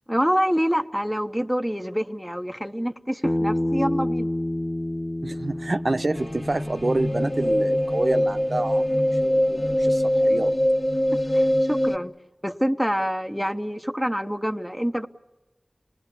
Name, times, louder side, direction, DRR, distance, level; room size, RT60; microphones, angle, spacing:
voice 1, 0.1-4.3 11.1-12.1 12.4-15.1, equal, ahead, 0.9 m, -26 dB
Bass guitar, 3.2-7.5, left 1 dB, 45° left, 1.0 m, -28 dB
voice 2, 5.2-10.5, right 2 dB, 55° right, 0.8 m, -28 dB
sound 1, 6.1-12.0, equal, 25° left, 1.5 m, -23 dB
28.0 x 20.0 x 8.3 m
wide cardioid pair, 50°, 0 cm